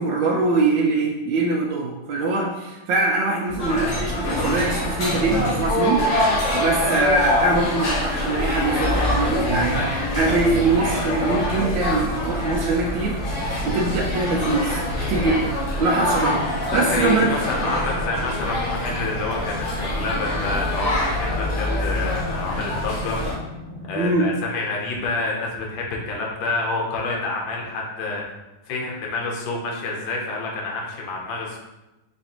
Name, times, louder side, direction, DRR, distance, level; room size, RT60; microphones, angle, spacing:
voice 1, 0.0-13.2 13.6-14.8 15.1-17.3 17.6-17.7 24.0-24.3, right 3 dB, 75° right, -1 dB, 1.2 m, -23 dB
sound 1, 3.5-22.5, equal, 20° right, 1.4 m, -41 dB
sound 2, 3.6-23.4, left 1 dB, 50° left, 0.9 m, -25 dB
sound 3, 12.9-24.1, left 3 dB, 55° right, 1.1 m, -38 dB
voice 2, 16.7-23.2 23.9-28.2 28.6-31.6, left 3 dB, 75° left, -1 dB, 1.5 m, -28 dB
4.2 x 3.1 x 2.8 m, 1.0 s
omnidirectional pair, 2.1 m